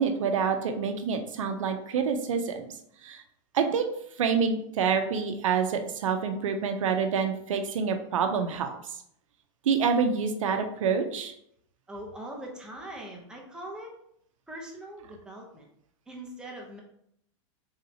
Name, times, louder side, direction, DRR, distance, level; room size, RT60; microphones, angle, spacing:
voice 1, 0.0-2.7 3.0-3.2 3.5-3.9 4.2-8.7 9.6-11.3, right 6 dB, 90° right, 6 dB, 0.5 m, -27 dB
voice 2, 11.9-13.9 14.5-15.7 16.1-16.8, right 1 dB, 5° right, -1 dB, 0.6 m, -41 dB
3.2 x 2.7 x 2.7 m, 0.72 s
supercardioid pair, 140°, 16 cm